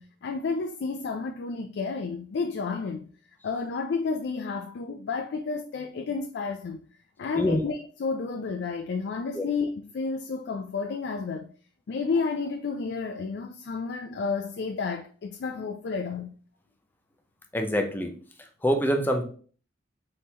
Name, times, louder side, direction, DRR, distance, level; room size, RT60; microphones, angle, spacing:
voice 1, 0.0-3.0 3.4-6.8 7.2-11.5 11.9-16.3, left 4 dB, 65° left, 0.4 m, -31 dB
voice 2, 17.5-18.1 18.4-19.2, equal, 10° left, 0.6 m, -25 dB
4.4 x 3.6 x 2.8 m
head